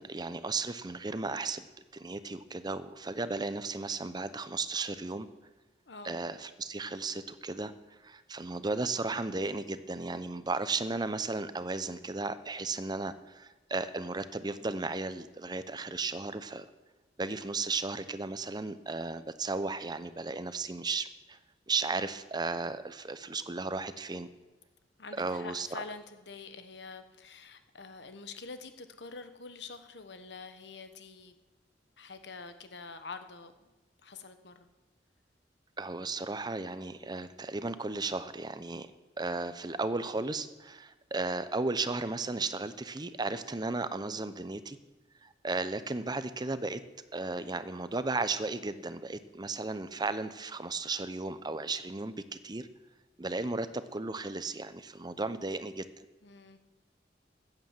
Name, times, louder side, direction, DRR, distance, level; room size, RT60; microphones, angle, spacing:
voice 1, 0.0-1.6 1.9-5.3 6.0-7.7 8.0-16.7 17.2-21.4 21.7-24.3 25.2-25.7 35.8-38.9 39.2-44.8 45.2-46.8 47.1-52.7 53.2-55.9, right 3 dB, 25° right, 12 dB, 0.7 m, -35 dB
voice 2, 5.9-6.2 25.0-31.3 32.0-33.7 34.0-34.7 56.2-56.6, left 4 dB, 85° left, 9 dB, 1.2 m, -46 dB
15.0 x 9.0 x 7.5 m, 1.2 s
head